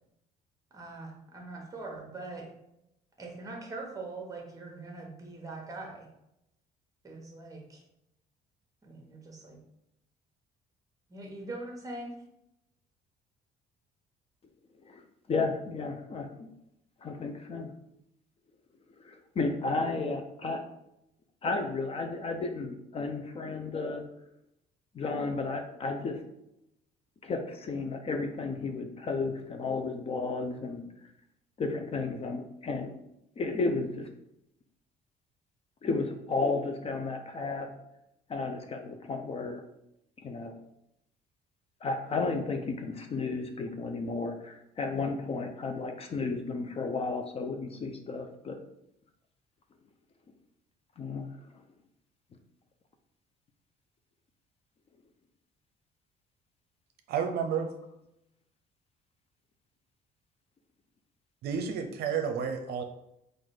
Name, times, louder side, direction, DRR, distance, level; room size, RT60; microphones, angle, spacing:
voice 1, 0.7-2.5 3.2-6.1 7.0-7.8 8.8-9.6 11.1-12.2, right 2 dB, 20° right, 0 dB, 1.2 m, -42 dB
voice 2, 14.9-16.5 17.0-17.7 19.0-20.6 21.4-24.1 24.9-26.2 27.2-30.8 31.6-32.9 33.4-34.1 35.8-37.7 38.3-39.6 40.2-40.5 41.8-48.6 51.0-51.3, left 3 dB, 35° left, 5 dB, 0.5 m, -33 dB
voice 3, 57.1-57.7 61.4-62.8, right 7 dB, 70° right, 6 dB, 0.6 m, -31 dB
4.0 x 2.5 x 4.8 m, 0.82 s
cardioid pair, 110°, 17 cm